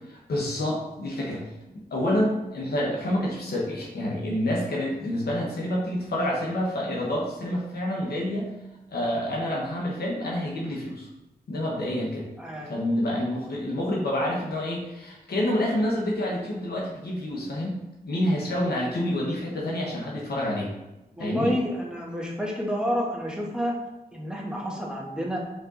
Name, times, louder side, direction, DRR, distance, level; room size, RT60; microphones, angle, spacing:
voice 1, 0.1-1.4 1.7-8.5 8.9-11.1 11.5-12.3 12.7-17.8 18.0-20.7 21.2-21.5, left 1 dB, 80° left, -3 dB, 1.3 m, -28 dB
voice 2, 12.4-12.7 21.2-23.8 24.1-25.4, equal, 5° right, -2 dB, 1.5 m, -29 dB
5.3 x 4.4 x 4.0 m, 0.99 s
wide cardioid pair, 75°, 16 cm